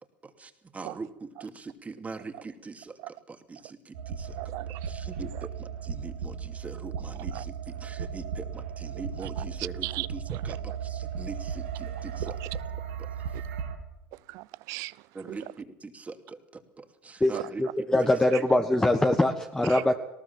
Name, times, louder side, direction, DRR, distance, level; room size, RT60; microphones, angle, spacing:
voice 1, 0.2-4.5 4.8-12.4 13.0-13.1 15.1-18.1, right 4 dB, 25° right, 7 dB, 2.6 m, -42 dB
sound 1, 3.9-13.8, right 7 dB, 85° right, 3.2 m, -36 dB
voice 2, 4.4-4.9 5.2-5.5 7.3-7.4 9.2-9.4 9.8-10.6 12.2-12.4 13.3-13.4 14.1-15.4 17.3-17.5 19.7-19.8, right 20 dB, 65° right, 21 dB, 0.6 m, -38 dB
voice 3, 17.6-20.0, left 1 dB, 10° left, 5 dB, 1.5 m, -23 dB
19.0 x 18.5 x 7.5 m, 0.89 s
hypercardioid pair, 85°, 6 cm